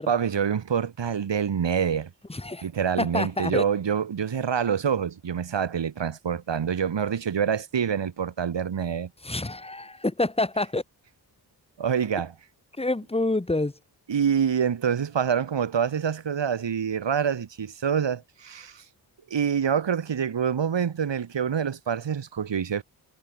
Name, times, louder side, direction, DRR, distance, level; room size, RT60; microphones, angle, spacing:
voice 1, 0.1-2.1 2.6-9.1 11.8-12.3 14.1-18.8 19.3-22.8, right 7 dB, 85° right, 4.9 m, -26 dB
voice 2, 2.3-2.6 3.0-3.6 9.2-10.8 12.8-13.7, left 2 dB, 15° left, 1.9 m, -27 dB
wide cardioid pair, 140°, 42 cm